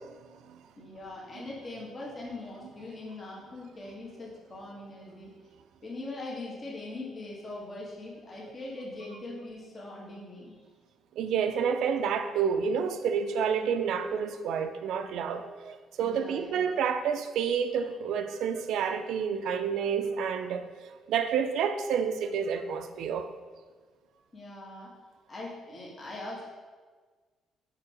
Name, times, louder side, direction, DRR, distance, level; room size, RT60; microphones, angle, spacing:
voice 1, 0.0-0.6 1.4-1.5 11.2-20.7 21.1-23.3, right 7 dB, 75° right, 0.4 m, -29 dB
voice 2, 0.8-5.3 5.8-10.6 16.0-16.6 24.3-24.9 25.3-26.4, left 2 dB, 35° left, 1.5 m, -41 dB
4.7 x 4.5 x 5.0 m
cardioid pair, 100°, 0 cm